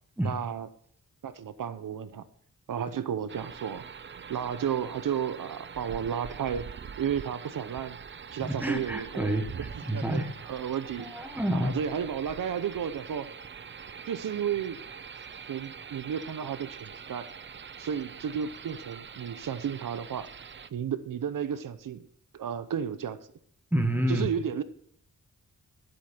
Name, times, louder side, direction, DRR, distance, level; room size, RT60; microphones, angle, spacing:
voice 1, 0.2-0.7 1.2-2.2 2.7-3.8 4.3-6.7 7.0-8.0 8.3-9.4 9.9-10.2 10.5-11.1 11.5-13.3 14.1-14.8 15.5-17.3 17.8-20.3 20.7-22.1 22.3-23.2 24.1-24.6, right 8 dB, 75° right, 13 dB, 0.8 m, -33 dB
sound 1, 3.3-20.7, right 6 dB, 35° right, 0.5 m, -44 dB
voice 2, 8.4-10.3 11.0-11.8 23.7-24.3, right 1 dB, 5° right, 5 dB, 1.3 m, -29 dB
14.0 x 8.1 x 4.3 m, 0.66 s
wide cardioid pair, 140°, 33 cm